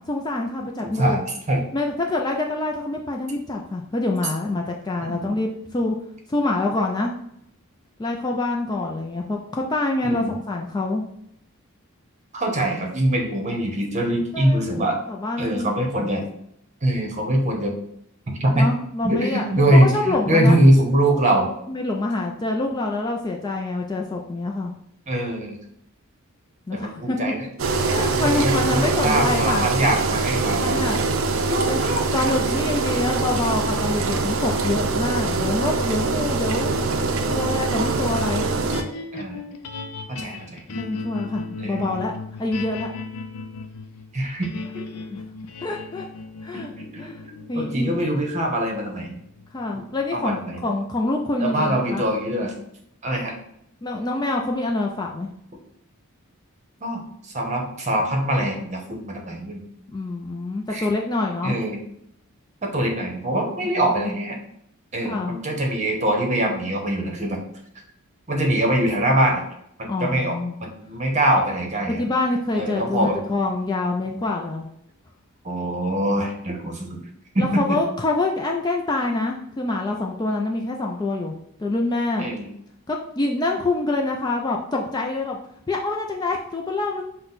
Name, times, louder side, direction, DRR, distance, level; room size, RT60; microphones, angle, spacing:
voice 1, 0.1-1.2 1.7-6.0 6.3-7.1 8.0-11.0 14.3-15.7 16.0-16.1 18.6-20.6 21.7-24.7 26.7-27.3 27.9-29.7 30.6-31.0 31.7-36.7 37.3-38.5 40.3-40.4 40.8-42.9 45.1-45.2 45.6-46.1 46.4-46.7 47.0-47.2 47.5-48.0 49.5-52.0 53.8-55.3 59.9-61.6 63.8-64.1 65.0-65.4 69.8-70.6 71.9-74.7 77.4-81.3 81.6-82.3 82.9-85.4 85.7-87.0, left 2 dB, 20° left, 1 dB, 0.3 m, -26 dB
voice 2, 0.8-1.6 5.0-5.3 10.0-10.3 12.3-15.0 15.4-16.3 16.8-17.7 18.3-18.7 19.0-21.5 25.1-25.6 26.7-27.4 28.1-30.8 31.5-32.0 38.1-38.4 39.1-39.4 40.1-40.6 41.6-42.0 44.1-44.5 46.5-49.2 49.7-49.8 50.1-50.6 51.4-52.5 53.0-53.3 56.8-57.0 57.3-59.6 60.7-60.9 61.4-61.8 62.6-64.4 64.9-67.4 68.3-69.4 69.8-72.0 72.6-73.2 74.1-74.3 75.4-77.0 77.3-77.8 82.2-82.5, right 1 dB, 30° right, 1 dB, 0.9 m, -23 dB
Engine, 27.6-38.8, right 3 dB, 60° right, 0.5 m, -23 dB
sound 1, 38.7-51.0, left 3 dB, 80° left, 0.5 m, -37 dB
6.1 x 2.2 x 4.0 m, 0.74 s
head